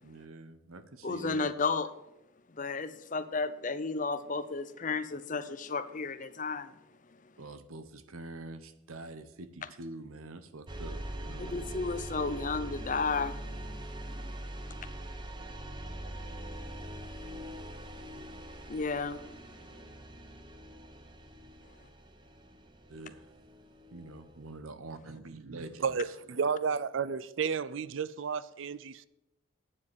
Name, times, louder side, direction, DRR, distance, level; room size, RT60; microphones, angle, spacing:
voice 1, 0.0-1.5 7.4-11.7 22.9-23.3 23.9-26.1, right 2 dB, 90° right, 1.0 m, -46 dB
voice 2, 1.0-1.9 2.6-6.7 11.4-13.4 18.7-19.2, left 4 dB, 40° left, 0.6 m, -33 dB
sound 1, 10.7-24.6, right 1 dB, 20° right, 0.9 m, -43 dB
voice 3, 25.8-29.1, right 6 dB, 65° right, 0.4 m, -32 dB
9.5 x 7.5 x 7.8 m
head